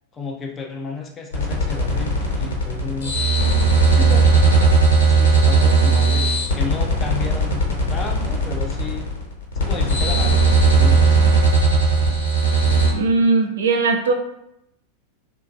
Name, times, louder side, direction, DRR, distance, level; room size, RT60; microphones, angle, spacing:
voice 1, 0.1-3.2 4.0-4.2 5.1-7.6 7.9-9.0 9.5-11.2, left 4 dB, 20° left, 2 dB, 0.5 m, -32 dB
sound 1, 1.3-12.9, right 3 dB, 65° left, 0.9 m, -17 dB
voice 2, 12.9-14.1, right 3 dB, 60° right, 4 dB, 0.3 m, -19 dB
2.9 x 2.3 x 2.4 m, 0.80 s
figure-of-eight pair, 90°, 0 cm